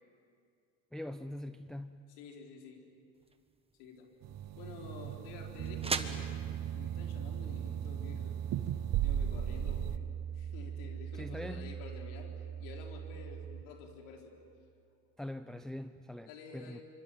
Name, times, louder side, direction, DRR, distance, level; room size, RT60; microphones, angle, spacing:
voice 1, 0.9-2.1 8.1-8.2 11.1-11.8 15.2-16.8, left 1 dB, ahead, 11 dB, 0.6 m, -43 dB
voice 2, 2.1-2.8 3.8-4.1 4.5-14.3 14.9-15.0 16.3-16.8, left 5 dB, 75° left, 2 dB, 4.5 m, -50 dB
sound 1, 3.1-9.1, right 4 dB, 15° right, 1.5 m, -44 dB
sound 2, 4.2-10.0, right 10 dB, 55° right, 1.3 m, -38 dB
Piano, 5.6-13.6, right 9 dB, 30° right, 1.0 m, -40 dB
25.0 x 24.5 x 9.2 m, 2.3 s
supercardioid pair, 100°, 40 cm